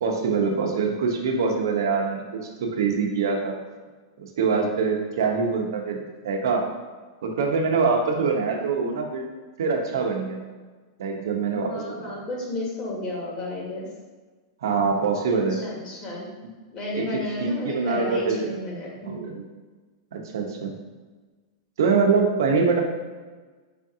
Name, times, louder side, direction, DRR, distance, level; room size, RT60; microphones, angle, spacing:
voice 1, 0.0-3.6 4.2-6.6 7.2-9.2 9.6-10.4 11.0-12.2 14.6-15.6 17.0-18.5 19.0-19.4 20.1-20.7 21.8-22.8, right 5 dB, 80° right, 2 dB, 0.8 m, -24 dB
voice 2, 11.5-13.9 15.3-16.3 16.7-19.2, left 1 dB, 35° left, -3 dB, 1.4 m, -32 dB
5.1 x 2.7 x 3.7 m, 1.3 s
hypercardioid pair, 130°, 2 cm